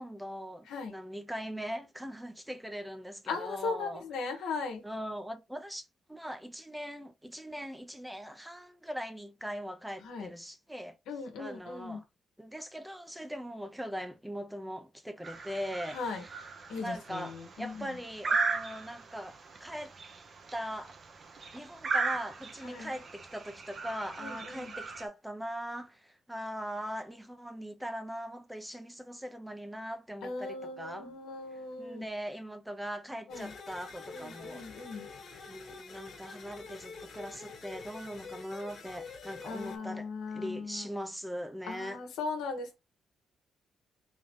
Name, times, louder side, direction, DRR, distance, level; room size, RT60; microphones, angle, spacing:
voice 1, 0.0-4.5 4.8-11.0 11.4-12.0 12.4-16.5 16.8-19.9 20.5-20.9 21.5-31.1 31.8-34.6 35.5-42.0, equal, 5° right, 0.7 m, -41 dB
voice 2, 3.3-4.8 10.0-10.3 11.1-12.0 15.9-16.2 16.7-17.9 22.6-22.9 24.2-24.7 30.2-32.0 33.3-33.5 34.1-35.1 39.5-40.8 41.7-42.8, left 4 dB, 85° left, 1.2 m, -38 dB
sound 1, 15.2-25.1, right 4 dB, 45° right, 0.8 m, -37 dB
sound 2, 33.3-39.8, left 4 dB, 60° left, 1.6 m, -47 dB
3.6 x 2.9 x 3.6 m
cardioid pair, 90°, 0 cm